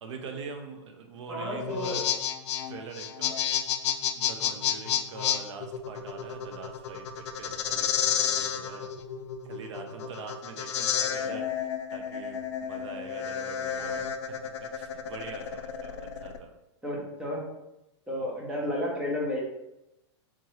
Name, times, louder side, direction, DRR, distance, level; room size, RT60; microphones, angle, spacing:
voice 1, 0.0-2.1 2.7-3.4 4.1-8.9 9.4-14.4 14.7-16.5, right 4 dB, 80° right, 4 dB, 0.7 m, -43 dB
voice 2, 1.3-2.0 9.9-10.1 11.0-11.5 13.8-14.1 16.8-17.4 18.1-19.4, left 1 dB, 5° right, -3 dB, 0.9 m, -33 dB
sound 1, 1.6-16.4, left 9 dB, 75° left, 0.4 m, -31 dB
3.6 x 2.9 x 3.2 m, 0.90 s
hypercardioid pair, 135°, 15 cm